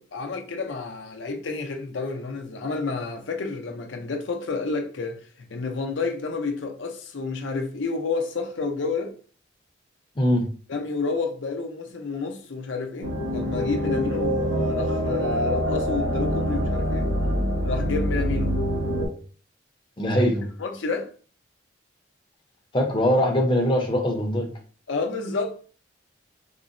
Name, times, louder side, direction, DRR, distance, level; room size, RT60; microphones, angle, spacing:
voice 1, 0.0-9.1 10.7-17.1 17.6-18.5 20.2-20.3 20.6-21.1 24.9-25.6, left 4 dB, 75° left, 0.5 m, -30 dB
sound 1, 13.0-19.1, equal, 85° right, 1.0 m, -25 dB
voice 2, 20.0-20.5 22.7-24.5, equal, 25° left, 0.5 m, -22 dB
3.7 x 2.0 x 2.5 m
head